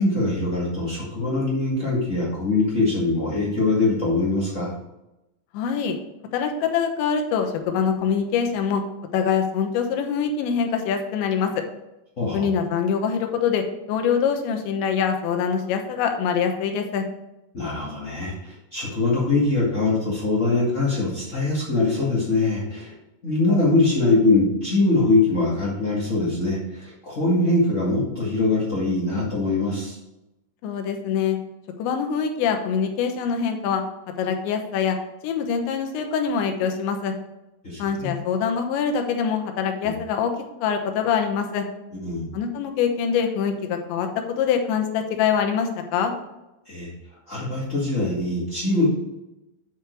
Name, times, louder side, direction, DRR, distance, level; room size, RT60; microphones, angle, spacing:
voice 1, 0.0-4.7 12.2-12.4 17.5-22.9 23.2-30.0 37.6-38.1 41.9-42.3 46.6-46.9 47.3-48.9, left 2 dB, 55° left, -7 dB, 0.8 m, -22 dB
voice 2, 5.5-6.0 6.3-8.8 9.1-11.6 12.3-17.1 30.6-31.4 31.8-33.8 34.2-35.0 35.2-37.1 37.8-40.3 40.6-41.7 42.3-46.1, left 7 dB, 85° left, 5 dB, 3.2 m, -24 dB
9.1 x 5.0 x 4.6 m, 0.94 s
omnidirectional pair, 5.0 m